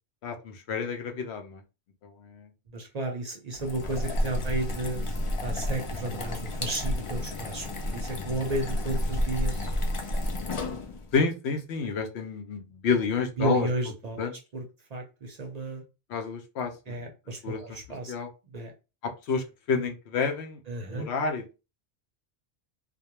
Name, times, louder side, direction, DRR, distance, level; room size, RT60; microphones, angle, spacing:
voice 1, 0.2-1.6 2.0-2.5 4.3-4.5 11.1-13.7 14.2-14.4 16.1-17.0 17.4-17.8 18.1-18.3 19.0-20.6 20.9-21.5, left 5 dB, 90° left, 6 dB, 0.8 m, -30 dB
voice 2, 2.7-5.1 5.4-9.7 13.4-14.6 14.9-15.8 16.9-18.1 18.5-18.7 20.7-21.1, right 2 dB, 50° right, 2 dB, 0.5 m, -33 dB
sound 1, 3.5-11.1, left 1 dB, 45° left, 0.4 m, -31 dB
2.3 x 2.1 x 2.8 m, 0.30 s
omnidirectional pair, 1.1 m